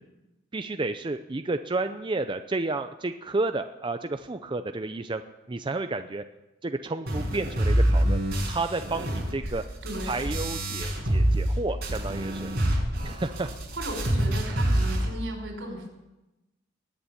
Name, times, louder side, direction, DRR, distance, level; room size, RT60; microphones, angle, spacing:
voice 1, 0.5-5.2 5.5-6.2 6.6-8.2 8.5-9.6 10.0-12.5 13.0-13.5, right 3 dB, 25° right, 8 dB, 0.5 m, -31 dB
sound 1, 7.1-11.5 11.8-15.1, right 1 dB, 55° right, 5.6 m, -26 dB
voice 2, 9.8-10.2 13.7-15.9, right 1 dB, 80° right, 2 dB, 5.1 m, -36 dB
20.5 x 7.1 x 9.0 m, 1.0 s
head